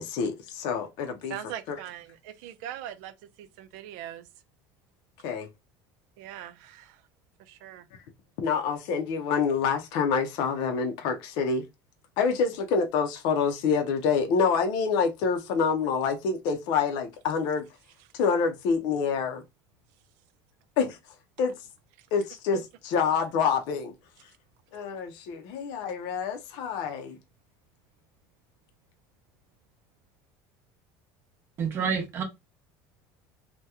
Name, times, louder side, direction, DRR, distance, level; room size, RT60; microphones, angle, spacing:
voice 1, 0.0-1.4 5.2-5.5 8.4-11.6 12.2-17.6 18.1-19.4 20.8-21.0 21.4-21.5 22.1-23.9 24.7-27.2, left 5 dB, 55° left, 0.6 m, -27 dB
voice 2, 1.3-4.3 6.2-7.0 7.4-7.9 22.0-22.1, right 11 dB, 70° right, 0.5 m, -41 dB
voice 3, 31.6-32.2, right 6 dB, 25° right, 0.8 m, -28 dB
2.8 x 2.2 x 3.4 m
cardioid pair, 180°, 9 cm